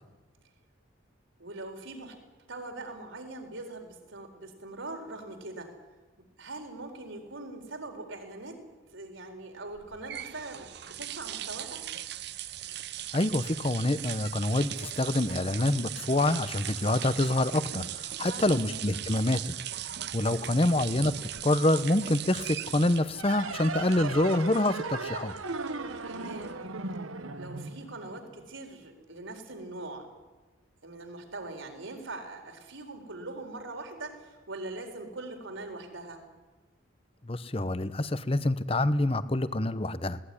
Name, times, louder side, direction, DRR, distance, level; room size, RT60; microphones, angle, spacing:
voice 1, 1.4-2.2 2.5-5.7 6.2-8.6 8.9-11.9 18.2-18.7 20.3-20.7 26.0-26.6 27.4-30.1 30.8-36.2, right 2 dB, 75° right, 4 dB, 4.3 m, -42 dB
sound 1, 9.7-26.8, right 11 dB, 55° right, 0.8 m, -39 dB
voice 2, 13.1-19.6 20.1-21.1 21.4-25.3 37.2-40.2, left 1 dB, 30° left, 14 dB, 0.8 m, -26 dB
sound 2, 23.1-28.4, right 3 dB, 90° right, 1.4 m, -37 dB
20.5 x 18.5 x 9.9 m, 1.2 s
head